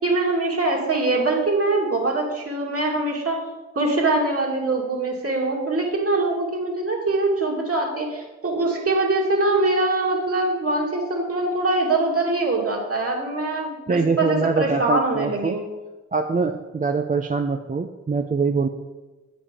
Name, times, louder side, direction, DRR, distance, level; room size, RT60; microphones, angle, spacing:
voice 1, 0.0-3.4 3.8-15.6, right 2 dB, 45° right, -1 dB, 2.4 m, -23 dB
voice 2, 13.9-15.6 16.1-18.7, right 4 dB, 25° right, 6 dB, 0.5 m, -23 dB
8.3 x 5.1 x 5.1 m, 1.2 s
supercardioid pair, 45°, 31 cm